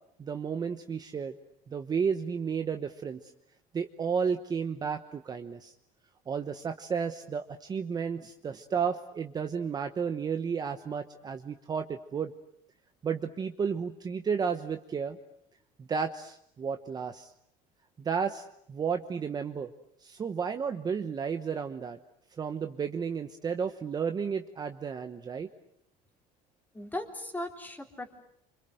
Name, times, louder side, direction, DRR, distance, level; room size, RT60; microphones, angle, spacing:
voice 1, 0.2-1.4 1.7-3.3 3.7-5.7 6.3-12.3 13.0-15.2 15.8-17.3 18.0-19.7 20.0-22.0 22.4-25.5, right 6 dB, 25° right, 7 dB, 1.0 m, -32 dB
voice 2, 26.7-28.3, left 1 dB, 10° left, 3 dB, 3.4 m, -38 dB
29.0 x 26.0 x 7.8 m, 0.75 s
cardioid pair, 150°, 16 cm